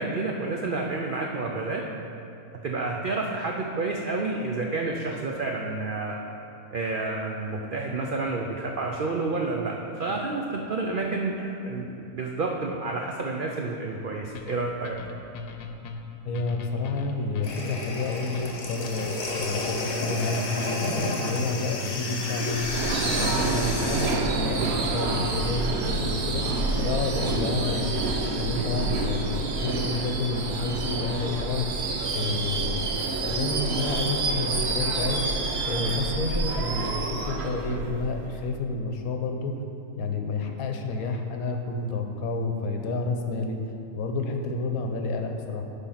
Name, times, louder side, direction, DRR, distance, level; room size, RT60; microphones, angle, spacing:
voice 1, 0.0-1.8 2.6-6.2 6.7-15.0 23.2-23.4 32.2-32.4, right 3 dB, 85° right, 0 dB, 0.4 m, -30 dB
sound 1, 14.3-22.2, left 4 dB, 90° left, 1.2 m, -38 dB
voice 2, 16.2-19.1 19.4-22.7 23.0-28.0 28.3-31.7 32.1-32.9 33.2-35.2 35.6-39.5 40.0-43.6 44.0-45.6, left 3 dB, 70° left, 4 dB, 1.1 m, -30 dB
sound 2, 17.4-24.2, left 2 dB, 50° left, 1.2 m, -31 dB
Subway metro underground / Screech, 22.5-38.4, right 3 dB, 55° right, 0.8 m, -28 dB
10.5 x 3.7 x 5.7 m, 2.7 s
omnidirectional pair, 1.6 m